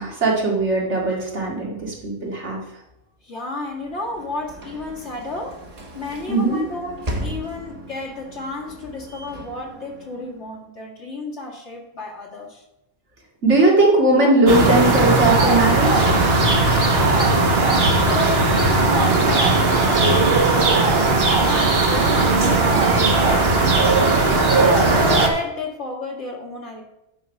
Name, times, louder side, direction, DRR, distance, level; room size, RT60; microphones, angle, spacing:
voice 1, 0.0-2.6 6.3-6.6 13.4-16.1, right 2 dB, 85° right, -3 dB, 2.5 m, -19 dB
voice 2, 3.2-5.6 6.0-12.6 18.0-26.8, left 2 dB, 75° left, 0 dB, 2.1 m, -33 dB
Sliding door / Slam, 3.6-10.7, equal, 35° right, 1.2 m, -36 dB
sound 1, 14.5-25.3, right 3 dB, 60° right, 1.4 m, -17 dB
9.7 x 4.7 x 5.4 m, 0.87 s
omnidirectional pair, 1.2 m